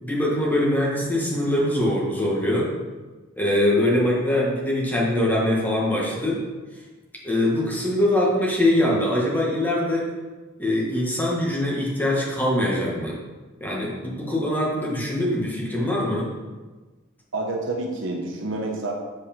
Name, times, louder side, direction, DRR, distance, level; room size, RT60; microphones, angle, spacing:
voice 1, 0.0-2.7 3.4-6.4 7.2-10.1 10.6-13.2 13.6-16.3, left 1 dB, 10° left, -5 dB, 1.6 m, -23 dB
voice 2, 17.3-18.9, right 2 dB, 65° right, 1 dB, 1.1 m, -28 dB
7.6 x 4.8 x 4.4 m, 1.3 s
head